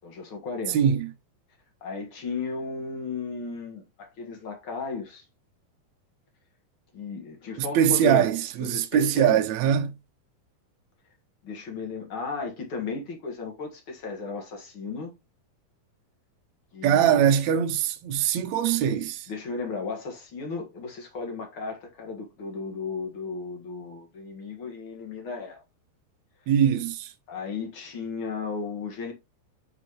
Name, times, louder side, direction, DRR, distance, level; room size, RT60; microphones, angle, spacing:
voice 1, 0.0-0.8 1.8-5.2 6.9-8.3 8.6-9.4 11.4-15.1 16.7-17.2 19.3-25.6 27.3-29.1, left 4 dB, 45° left, 1.8 m, -35 dB
voice 2, 0.7-1.1 7.6-9.9 16.8-19.3 26.5-27.1, right 9 dB, 75° right, 1.6 m, -22 dB
6.2 x 5.5 x 3.0 m
omnidirectional pair, 4.2 m